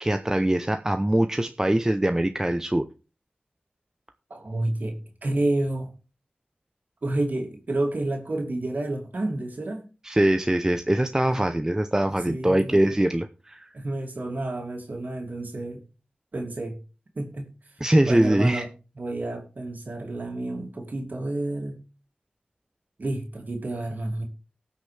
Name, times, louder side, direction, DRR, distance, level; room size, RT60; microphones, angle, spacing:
voice 1, 0.0-2.8 10.0-13.7 17.8-18.6, right 1 dB, 15° right, 7 dB, 0.7 m, -22 dB
voice 2, 4.3-5.9 7.0-9.8 12.3-12.8 13.7-15.8 16.3-16.8 17.1-17.5 18.1-18.7 19.0-21.8 23.0-24.2, right 2 dB, 65° right, 3 dB, 2.6 m, -30 dB
19.0 x 6.3 x 3.4 m, 0.32 s
wide cardioid pair, 70°, 3 cm